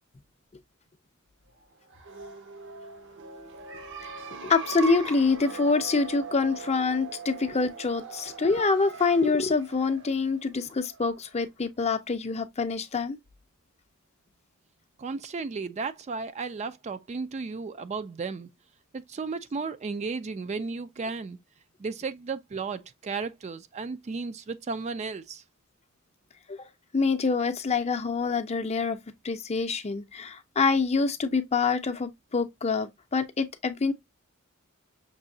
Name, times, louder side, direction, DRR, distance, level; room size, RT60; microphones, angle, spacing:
sound 1, 1.8-11.4, right 4 dB, 60° right, 0.8 m, -41 dB
voice 1, 4.4-13.2 26.5-29.0 29.2-33.9, left 4 dB, 30° left, 0.6 m, -26 dB
voice 2, 15.0-18.5 18.9-21.4 21.8-25.4, right 4 dB, 35° right, 0.4 m, -34 dB
6.0 x 2.8 x 2.6 m
head